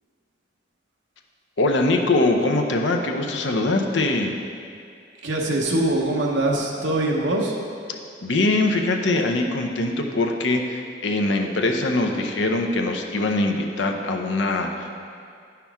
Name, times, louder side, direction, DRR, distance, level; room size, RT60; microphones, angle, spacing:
voice 1, 1.6-4.3 8.2-14.9, left 2 dB, 75° left, 3 dB, 0.7 m, -22 dB
voice 2, 5.2-7.5, right 1 dB, 75° right, -1 dB, 1.0 m, -23 dB
9.9 x 5.8 x 3.5 m, 2.3 s
head